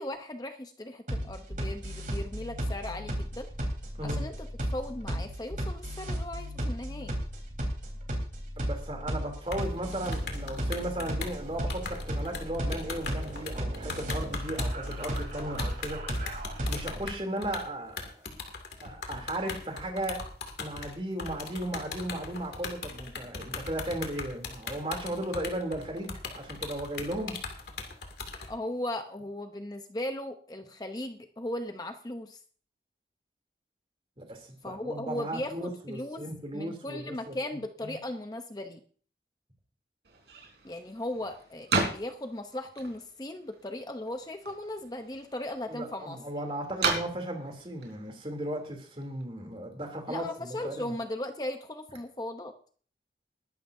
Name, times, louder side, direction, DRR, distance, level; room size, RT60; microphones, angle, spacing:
voice 1, 0.0-3.5 4.0-7.2 28.5-32.4 34.6-36.2 36.5-38.8 40.6-46.2 50.1-52.5, left 1 dB, 20° left, 6 dB, 0.8 m, -37 dB
sound 1, 1.1-17.0, equal, 45° right, 4.0 m, -34 dB
voice 2, 4.0-4.3 8.6-16.0 16.6-18.3 18.8-20.2 20.6-27.3 34.2-37.3 37.8-38.0 45.7-50.9, right 1 dB, 30° right, 3 dB, 3.0 m, -36 dB
sound 2, 9.5-28.5, left 4 dB, 70° left, 2.4 m, -39 dB
sound 3, 40.0-49.2, right 3 dB, 75° right, 4.1 m, -37 dB
21.0 x 12.0 x 2.7 m, 0.43 s
head